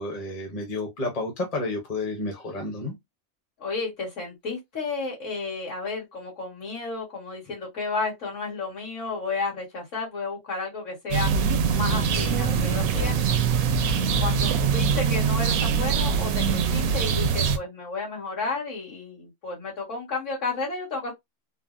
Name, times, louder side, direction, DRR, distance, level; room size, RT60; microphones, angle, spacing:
voice 1, 0.0-2.9, left 2 dB, 30° left, 0.9 m, -31 dB
voice 2, 3.6-11.3 11.7-13.1 14.2-21.1, left 3 dB, 60° left, 1.9 m, -32 dB
sound 1, 11.1-17.6, right 6 dB, 85° right, 1.0 m, -23 dB
3.8 x 2.0 x 2.4 m
omnidirectional pair, 1.4 m